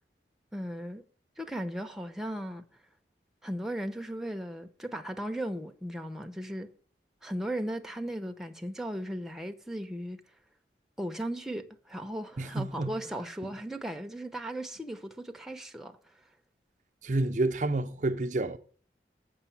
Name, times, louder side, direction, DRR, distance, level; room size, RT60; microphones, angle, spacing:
voice 1, 0.5-1.0 1.4-2.6 3.4-6.7 7.2-10.2 11.0-16.0, right 1 dB, 5° right, 0.7 m, -36 dB
voice 2, 12.4-13.0 17.0-18.6, right 2 dB, 45° right, 0.5 m, -29 dB
8.1 x 6.3 x 7.2 m
head